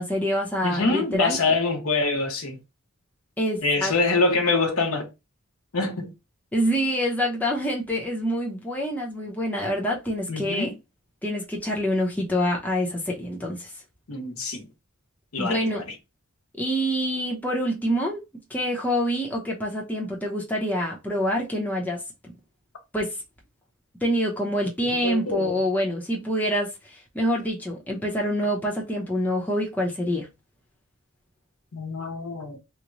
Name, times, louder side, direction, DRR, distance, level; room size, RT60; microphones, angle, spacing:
voice 1, 0.0-1.4 3.4-3.9 6.5-10.7 11.2-13.7 15.4-15.8 16.6-18.2 18.5-22.0 22.9-23.2 24.0-30.3, equal, 5° left, 0.7 m, -26 dB
voice 2, 0.6-2.6 3.6-5.1 5.7-6.1 10.3-10.7 14.1-14.7 15.3-15.9 25.0-25.6 31.7-32.6, left 3 dB, 80° left, 1.0 m, -25 dB
3.1 x 2.1 x 3.8 m
head